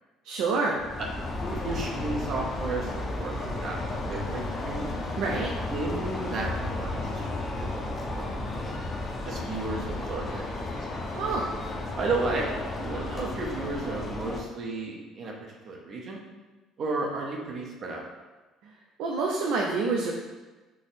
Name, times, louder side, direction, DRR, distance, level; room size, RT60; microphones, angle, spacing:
voice 1, 0.2-0.8 5.2-5.5 11.1-11.5 18.6-18.7 19.0-20.1, right 3 dB, 75° right, -1 dB, 0.4 m, -27 dB
sound 1, 0.8-14.4, left 2 dB, 30° left, 0.5 m, -33 dB
voice 2, 1.5-4.9 5.7-7.8 8.2-8.8 9.2-10.6 12.0-15.3 15.6-16.2 16.8-18.0, right 3 dB, 45° right, -1 dB, 0.7 m, -33 dB
3.4 x 2.0 x 4.1 m, 1.2 s
cardioid pair, 120°, 0 cm